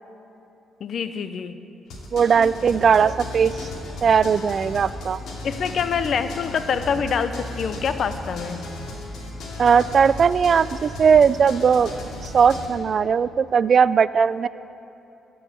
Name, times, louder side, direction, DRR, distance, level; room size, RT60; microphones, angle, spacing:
voice 1, 0.8-1.6 5.4-8.6, left 6 dB, 60° left, 11 dB, 0.6 m, -25 dB
sound 1, 1.9-12.7, left 1 dB, 75° left, 2.4 m, -35 dB
voice 2, 2.1-3.7 4.0-5.2 9.6-11.9 12.2-14.5, right 6 dB, 50° right, 17 dB, 0.3 m, -18 dB
14.5 x 5.5 x 8.2 m, 2.9 s
cardioid pair, 80°, 0 cm